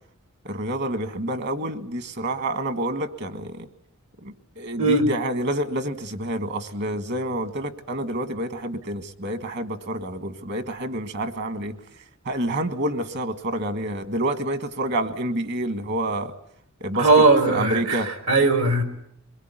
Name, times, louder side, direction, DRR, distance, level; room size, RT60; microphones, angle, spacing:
voice 1, 0.4-3.7 4.2-11.8 12.2-16.3 16.8-17.1 17.5-18.1, right 1 dB, 55° right, 10 dB, 1.7 m, -28 dB
voice 2, 17.0-18.8, right 3 dB, 80° right, 8 dB, 3.5 m, -19 dB
23.5 x 21.5 x 9.1 m, 0.73 s
head